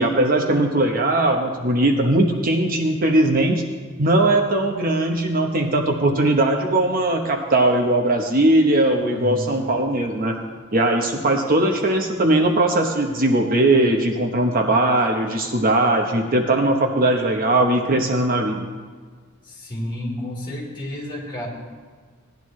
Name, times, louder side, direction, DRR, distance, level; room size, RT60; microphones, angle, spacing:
voice 1, 0.0-3.6 4.0-10.4 10.7-18.7, right 1 dB, 45° right, 3 dB, 0.9 m, -19 dB
voice 2, 9.0-9.5 19.4-21.5, left 1 dB, 25° left, -4 dB, 3.2 m, -31 dB
17.5 x 10.5 x 3.2 m, 1.5 s
head